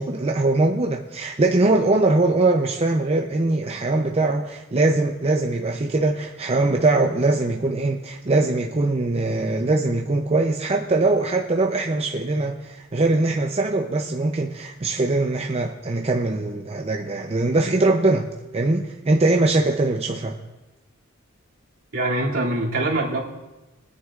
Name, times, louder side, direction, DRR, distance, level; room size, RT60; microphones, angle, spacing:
voice 1, 0.0-18.3 18.5-20.3, right 2 dB, 30° right, 1 dB, 0.6 m, -22 dB
voice 2, 21.9-23.2, right 2 dB, 70° right, -5 dB, 2.7 m, -23 dB
23.0 x 9.5 x 2.5 m, 1.1 s
head